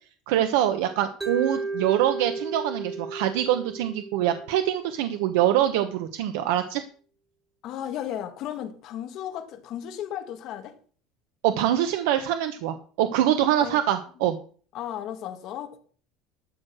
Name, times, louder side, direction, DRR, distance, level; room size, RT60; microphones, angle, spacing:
voice 1, 0.3-6.8 11.4-14.4, right 11 dB, 85° right, 1.0 m, -24 dB
Mallet percussion, 1.2-5.3, right 3 dB, 5° right, 0.7 m, -34 dB
voice 2, 7.6-10.7 13.6-13.8 14.7-15.8, left 10 dB, 40° left, 1.8 m, -34 dB
12.5 x 6.5 x 6.4 m
cardioid pair, 175°, 0 cm